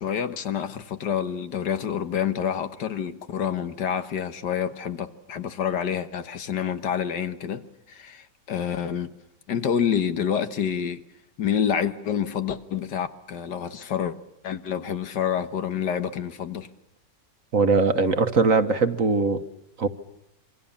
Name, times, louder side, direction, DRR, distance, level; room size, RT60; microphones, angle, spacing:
voice 1, 0.0-7.6 7.9-9.2 9.5-11.0 11.4-14.2 14.4-16.7, left 8 dB, 70° left, 1.9 m, -28 dB
voice 2, 17.5-19.4 19.8-19.9, right 4 dB, 50° right, 1.5 m, -21 dB
27.0 x 24.5 x 7.1 m
omnidirectional pair, 1.9 m